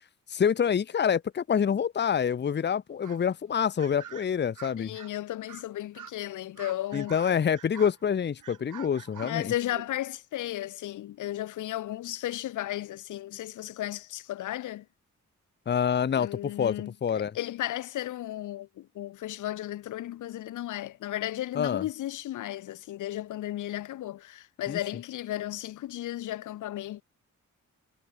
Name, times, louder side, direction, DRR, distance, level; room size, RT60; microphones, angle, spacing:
voice 1, 0.3-4.9 6.9-9.5 15.7-16.8 17.0-17.3 21.5-21.9 24.7-24.8, left 7 dB, 35° left, 0.8 m, -27 dB
sound 1, 3.0-3.3 3.8-5.1 5.5-5.7 5.9-6.1 6.5-8.0 8.4-10.0, right 9 dB, 80° right, 3.2 m, -47 dB
voice 2, 4.8-7.2 9.2-14.9 16.2-27.0, left 14 dB, 75° left, 0.5 m, -35 dB
wide cardioid pair, 165°, 31 cm